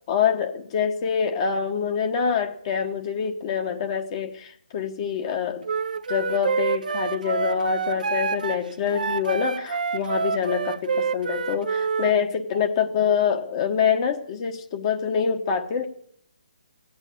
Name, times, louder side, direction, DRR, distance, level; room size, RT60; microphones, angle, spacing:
voice 1, 0.1-5.7 6.1-15.9, left 7 dB, 35° left, 1.1 m, -25 dB
Wind instrument woodwind instrument, 5.6-12.2, right 5 dB, 70° right, 0.6 m, -27 dB
15.5 x 9.0 x 8.6 m
hypercardioid pair, 150°, 5 cm